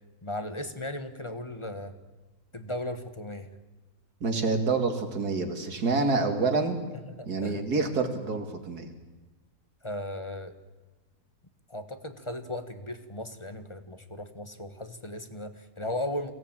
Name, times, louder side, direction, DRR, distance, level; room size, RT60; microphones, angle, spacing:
voice 1, 0.2-2.0 2.5-3.5 7.0-7.6 9.8-10.5 11.7-16.3, left 1 dB, 20° left, 9 dB, 1.3 m, -36 dB
voice 2, 4.2-6.8 7.3-8.9, right 3 dB, 75° right, 6 dB, 2.9 m, -27 dB
23.5 x 17.5 x 9.0 m, 1.2 s
omnidirectional pair, 1.7 m